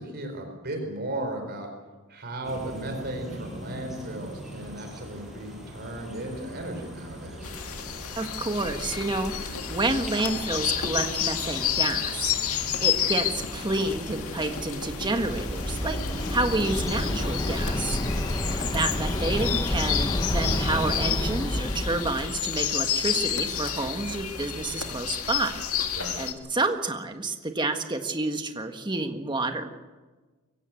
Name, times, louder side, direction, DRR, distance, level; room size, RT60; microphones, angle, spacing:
voice 1, 0.0-1.7 2.1-7.5 25.9-26.2, right 1 dB, 45° right, 4 dB, 4.5 m, -35 dB
sound 1, 2.4-19.5, equal, ahead, 7.3 m, -40 dB
sound 2, 7.4-26.3, left 9 dB, 70° left, 2.0 m, -31 dB
voice 2, 8.2-12.3 12.8-16.0 16.3-18.0 18.5-25.6 26.2-29.7, right 2 dB, 20° right, 5 dB, 1.7 m, -29 dB
Waves surf, 14.7-22.4, left 1 dB, 20° left, 0.9 m, -29 dB
23.5 x 16.0 x 8.5 m, 1.3 s
head